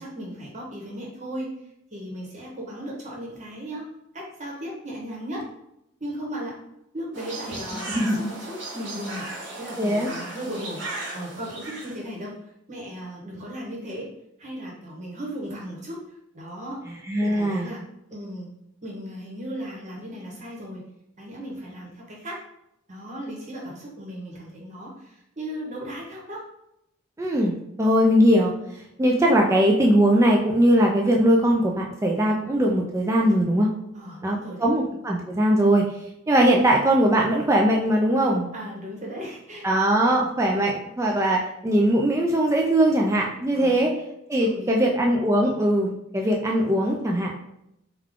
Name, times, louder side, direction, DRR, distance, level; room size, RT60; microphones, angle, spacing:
voice 1, 0.0-1.5 1.9-3.9 4.1-5.4 6.0-6.5 6.9-9.3 9.6-10.8 11.1-12.3 12.7-14.1 14.4-16.0 16.3-16.8 17.2-18.5 18.8-20.9 21.2-22.4 22.9-26.4 33.9-34.7 38.5-39.7 43.5-43.8 44.3-44.9, equal, 35° right, -3 dB, 1.0 m, -36 dB
sound 1, 7.1-12.0, right 2 dB, 60° right, 0.9 m, -36 dB
voice 2, 7.9-8.3 9.8-10.1 17.1-17.7 27.2-28.5 29.0-33.7 34.2-35.8 36.3-38.5 39.6-43.9 44.3-47.3, right 1 dB, 15° right, 0 dB, 0.3 m, -20 dB
3.5 x 2.3 x 3.5 m, 0.81 s
head